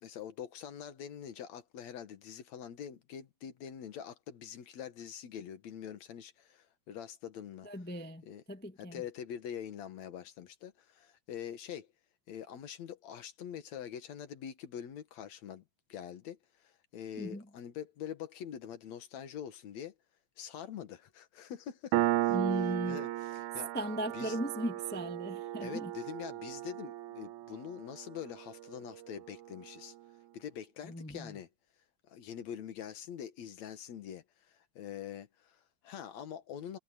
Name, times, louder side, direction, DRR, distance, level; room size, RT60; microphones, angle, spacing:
voice 1, 0.0-7.7 8.2-8.4 8.8-11.9 12.3-15.6 15.9-19.9 20.4-22.0 22.2-22.4 22.9-23.7 24.1-24.4 25.6-29.9 30.3-31.5 32.1-36.8, left 9 dB, 60° left, 2.6 m, -44 dB
voice 2, 7.6-9.0 17.2-17.4 22.3-23.0 23.7-25.9 30.8-31.4, equal, 10° left, 0.4 m, -37 dB
Piano, 21.9-29.1, right 15 dB, 75° right, 2.1 m, -35 dB
omnidirectional pair, 3.7 m